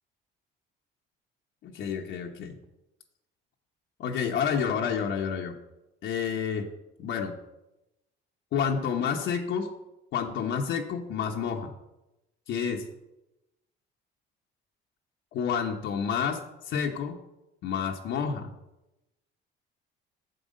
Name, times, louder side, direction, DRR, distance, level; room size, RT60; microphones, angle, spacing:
voice 1, 1.6-2.6 4.0-5.6 6.0-6.7 7.0-7.3 8.5-9.7 10.1-11.7 12.5-12.8 15.3-17.2 17.6-18.5, left 7 dB, 65° left, 2 dB, 1.0 m, -29 dB
7.8 x 7.1 x 5.3 m, 0.95 s
cardioid pair, 110°, 21 cm